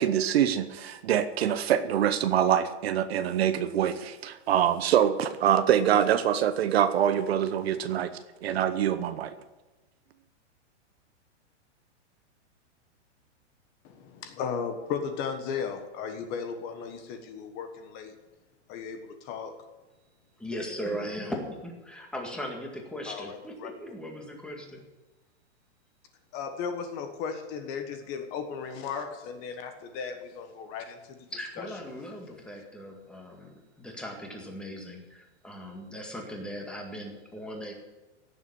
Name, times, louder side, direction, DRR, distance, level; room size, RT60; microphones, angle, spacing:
voice 1, 0.0-8.1 8.4-9.3, right 10 dB, 55° right, 11 dB, 1.1 m, -25 dB
voice 2, 13.8-18.1 18.7-19.5 23.1-23.7 26.3-31.1 31.6-31.7, left 6 dB, 25° left, 7 dB, 1.3 m, -36 dB
voice 3, 20.4-24.8 31.3-37.7, equal, 5° left, 0 dB, 2.0 m, -38 dB
16.5 x 7.3 x 8.7 m, 1.1 s
hypercardioid pair, 160°, 36 cm